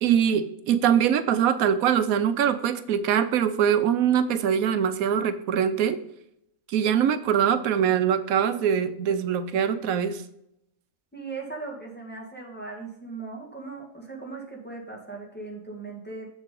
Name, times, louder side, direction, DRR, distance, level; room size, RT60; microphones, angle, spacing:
voice 1, 0.0-6.0 6.7-10.2, right 8 dB, 90° right, 11 dB, 1.1 m, -23 dB
voice 2, 11.1-16.3, right 3 dB, 5° left, -2 dB, 1.9 m, -38 dB
7.5 x 7.1 x 3.8 m, 0.77 s
omnidirectional pair, 1.5 m